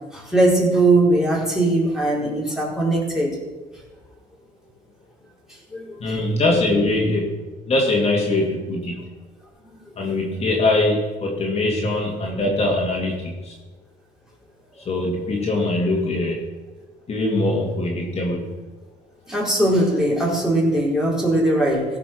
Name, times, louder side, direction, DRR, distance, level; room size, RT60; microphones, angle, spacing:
voice 1, 0.1-3.4 5.7-6.0 19.3-21.9, right 1 dB, 5° right, -4 dB, 4.1 m, -20 dB
voice 2, 6.0-7.3 7.7-9.1 10.0-13.5 14.7-16.4 17.1-18.5, left 2 dB, 40° left, -1 dB, 2.1 m, -22 dB
16.0 x 5.9 x 6.0 m, 1.3 s
cardioid pair, 110°, 17 cm